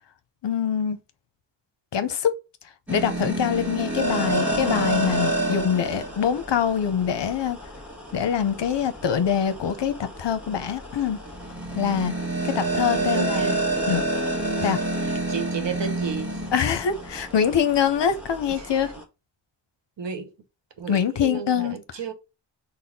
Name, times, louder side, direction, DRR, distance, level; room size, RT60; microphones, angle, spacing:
voice 1, 0.4-1.0 1.9-2.3 2.9-7.6 8.1-11.2 11.7-12.1 12.4-13.4 13.9-14.0 14.6-14.8 16.5-18.9 20.9-21.8, left 8 dB, 60° left, 0.7 m, -24 dB
sound 1, 2.9-19.0, right 1 dB, 5° right, 1.3 m, -29 dB
voice 2, 13.0-14.1 14.6-14.8 15.3-16.4 18.6-18.7 20.0-20.3 20.8-22.1, right 6 dB, 65° right, 1.0 m, -33 dB
4.1 x 2.1 x 3.5 m
wide cardioid pair, 80°, 48 cm